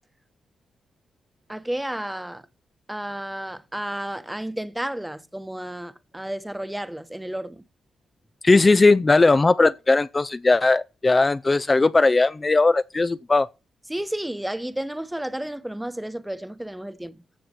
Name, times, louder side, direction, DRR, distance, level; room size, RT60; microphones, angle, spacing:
voice 1, 1.5-2.4 2.9-7.6 13.9-17.2, right 1 dB, 10° right, 1.0 m, -32 dB
voice 2, 8.4-13.5, left 3 dB, 30° left, 0.4 m, -18 dB
14.5 x 7.2 x 3.0 m
supercardioid pair, 50°, 0 cm